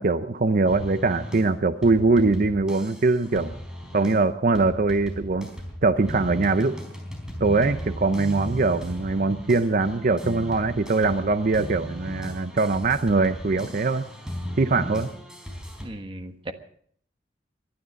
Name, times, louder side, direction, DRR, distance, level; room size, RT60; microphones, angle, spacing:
voice 1, 0.0-3.5 3.9-5.5 5.8-6.8 7.4-14.1 14.6-15.1, right 3 dB, 50° right, 11 dB, 0.7 m, -22 dB
sound 1, 0.7-4.3 4.6-15.9, equal, 5° right, 4.2 m, -36 dB
voice 2, 14.6-15.0 15.8-16.5, right 1 dB, 30° right, 7 dB, 1.4 m, -37 dB
22.5 x 11.5 x 5.3 m, 0.63 s
head